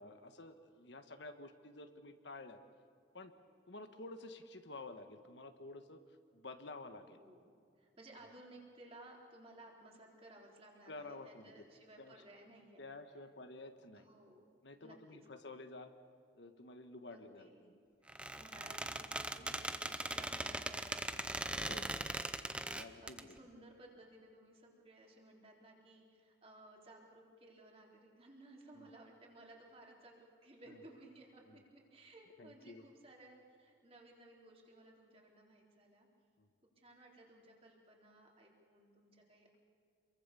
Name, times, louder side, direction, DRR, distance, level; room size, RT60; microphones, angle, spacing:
voice 1, 0.0-2.6 3.1-3.3 3.7-6.0 6.3-7.2 10.9-11.6 12.0-12.2 12.8-14.0 14.6-15.9 16.3-17.7 19.4-19.6 21.5-21.8 22.7-23.3 28.7-28.8 30.7-30.8 31.5-31.6 32.4-32.8 36.4-36.5, left 2 dB, 65° left, 8 dB, 1.4 m, -51 dB
voice 2, 7.1-7.5 7.8-12.9 14.0-14.4 14.8-15.2 17.1-17.7 18.0-36.1 36.8-39.6, right 1 dB, 30° right, -1 dB, 3.9 m, -59 dB
Squeak, 18.1-23.2, right 1 dB, 5° right, 0.7 m, -40 dB
27.5 x 23.0 x 6.9 m, 2.3 s
head